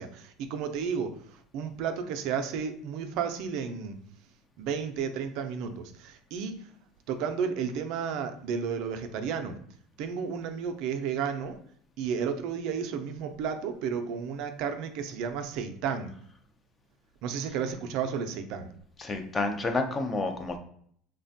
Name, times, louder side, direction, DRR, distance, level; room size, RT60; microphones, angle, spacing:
voice 1, 0.0-3.9 4.6-6.7 7.1-9.6 10.0-11.6 12.0-16.1 17.2-18.7, right 6 dB, 65° right, 7 dB, 0.3 m, -32 dB
voice 2, 19.0-20.6, left 3 dB, 20° left, 6 dB, 0.4 m, -29 dB
3.2 x 2.1 x 2.6 m, 0.63 s
supercardioid pair, 125°, 0 cm